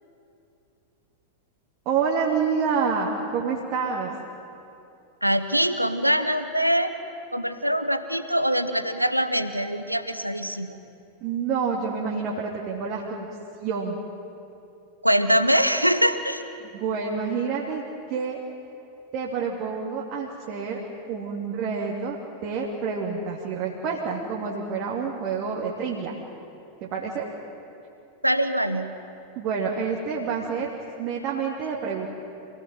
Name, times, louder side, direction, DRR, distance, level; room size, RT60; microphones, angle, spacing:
voice 1, 1.8-4.1 11.2-13.3 13.6-14.0 16.6-17.8 18.1-18.4 19.1-20.8 21.1-22.2 22.4-26.1 26.8-27.2 29.4-30.7 31.0-32.1, right 5 dB, 40° right, -3 dB, 2.8 m, -28 dB
voice 2, 5.2-6.9 7.3-10.8 15.0-16.4 28.2-28.9, equal, 90° right, 11 dB, 1.1 m, -23 dB
27.0 x 17.5 x 9.2 m, 2.8 s
figure-of-eight pair, 90°, 0 cm